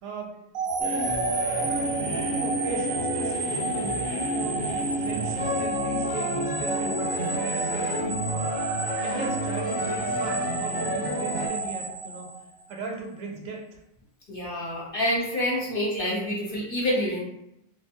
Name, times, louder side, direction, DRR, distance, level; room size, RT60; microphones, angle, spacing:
voice 1, 0.0-0.4 1.7-1.9 2.3-4.0 4.3-4.6 4.9-8.5 9.0-12.3 12.7-13.8, right 4 dB, 80° right, 0 dB, 1.0 m, -37 dB
sound 1, 0.5-12.7, right 3 dB, 65° right, 0.5 m, -31 dB
sound 2, 0.8-11.5, equal, 15° left, 0.3 m, -30 dB
voice 2, 14.3-17.2, left 1 dB, 50° left, -5 dB, 0.8 m, -27 dB
2.5 x 2.3 x 2.8 m, 0.80 s
omnidirectional pair, 1.4 m